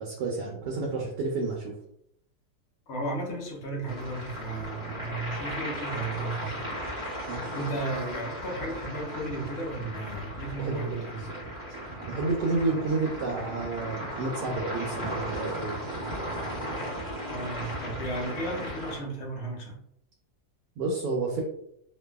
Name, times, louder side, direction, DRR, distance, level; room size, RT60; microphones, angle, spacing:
voice 1, 0.0-1.7 7.3-7.7 10.6-11.1 12.1-15.8 20.8-21.4, right 3 dB, 90° right, -1 dB, 1.2 m, -30 dB
voice 2, 2.9-6.8 7.2-11.3 17.2-19.8, right 2 dB, 60° left, -1 dB, 0.7 m, -35 dB
sound 1, 3.9-19.0, equal, 35° right, 1.1 m, -36 dB
2.6 x 2.5 x 2.2 m, 0.74 s
omnidirectional pair, 1.8 m